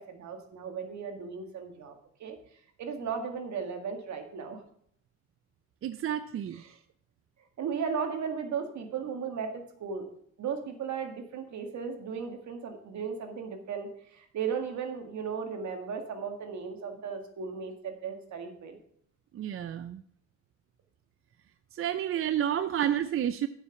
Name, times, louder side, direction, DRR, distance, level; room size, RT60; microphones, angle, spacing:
voice 1, 0.0-2.4 2.8-4.6 6.5-6.8 7.6-10.0 10.4-18.8, right 6 dB, 70° right, 4 dB, 1.8 m, -36 dB
voice 2, 5.8-6.7 19.3-20.0 21.7-23.5, right 10 dB, 45° right, 11 dB, 0.5 m, -30 dB
9.2 x 5.8 x 5.8 m, 0.66 s
cardioid pair, 90°, 30 cm